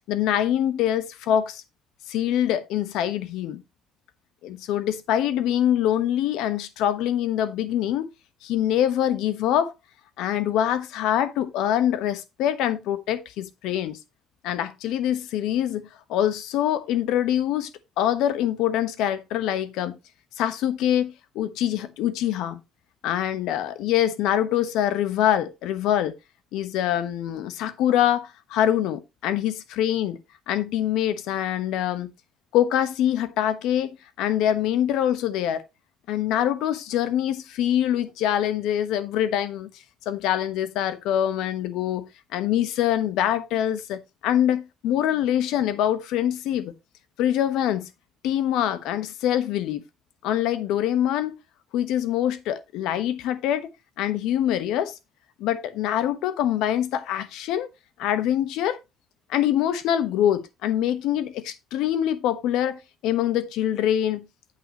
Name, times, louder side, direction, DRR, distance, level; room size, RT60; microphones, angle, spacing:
voice 1, 0.1-1.6 2.1-3.6 4.4-8.1 8.4-9.7 10.2-14.0 14.4-17.7 18.0-20.0 20.4-22.6 23.0-26.1 26.5-30.2 30.5-32.1 32.5-35.6 36.1-39.7 40.1-42.1 42.3-46.7 47.2-47.9 48.2-49.8 50.2-51.3 51.7-53.7 54.0-54.9 55.4-57.7 58.0-58.8 59.3-64.2, left 11 dB, 90° left, 1.1 m, -24 dB
9.2 x 8.1 x 2.9 m
cardioid pair, 170°, 0 cm